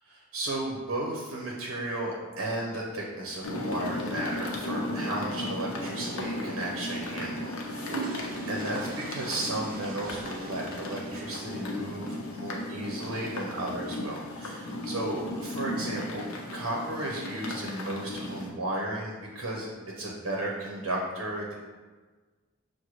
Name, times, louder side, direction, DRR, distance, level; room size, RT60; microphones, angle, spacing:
voice 1, 0.1-8.2 8.5-16.2 16.5-19.7 20.0-21.5, right 1 dB, 85° right, -2 dB, 0.7 m, -34 dB
sound 1, 3.4-18.5, left 1 dB, 85° left, 0.7 m, -35 dB
sound 2, 7.7-12.1, right 4 dB, 45° right, 0.4 m, -42 dB
6.1 x 2.2 x 3.0 m, 1.3 s
head